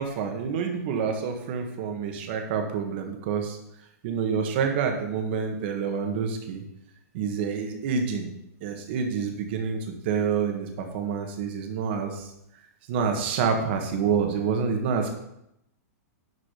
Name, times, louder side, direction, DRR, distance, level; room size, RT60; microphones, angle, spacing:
voice 1, 0.0-3.6 4.0-6.6 7.1-8.3 8.6-12.3 12.9-15.2, right 6 dB, 40° right, 4 dB, 1.6 m, -27 dB
11.0 x 5.0 x 5.1 m, 0.80 s
supercardioid pair, 170°, 9 cm